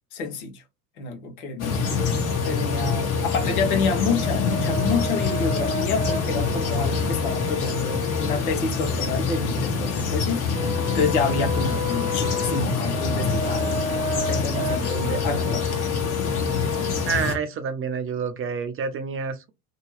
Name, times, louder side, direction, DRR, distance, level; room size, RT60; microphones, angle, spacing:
voice 1, 0.1-0.6 1.0-1.9 2.4-10.4 10.9-13.8 14.1-15.6, left 4 dB, 70° left, 1.1 m, -28 dB
sound 1, 1.6-17.3, left 4 dB, 40° left, 1.2 m, -26 dB
Brass instrument, 2.0-8.4 10.5-17.1, left 3 dB, 10° right, 1.0 m, -31 dB
voice 2, 17.1-19.5, right 6 dB, 30° right, 0.6 m, -28 dB
2.8 x 2.3 x 3.1 m
hypercardioid pair, 75°, 45 cm